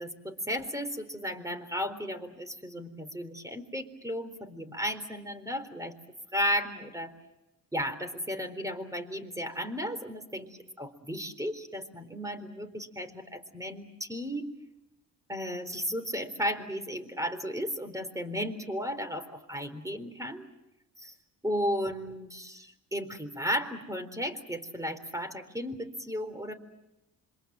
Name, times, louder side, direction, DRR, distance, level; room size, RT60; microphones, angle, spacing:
voice 1, 0.0-5.9 6.3-7.1 7.7-10.5 10.8-14.5 15.3-20.4 21.0-21.1 21.4-26.5, equal, 10° right, 9 dB, 4.0 m, -34 dB
26.5 x 24.5 x 7.8 m, 0.95 s
supercardioid pair, 70°, 40 cm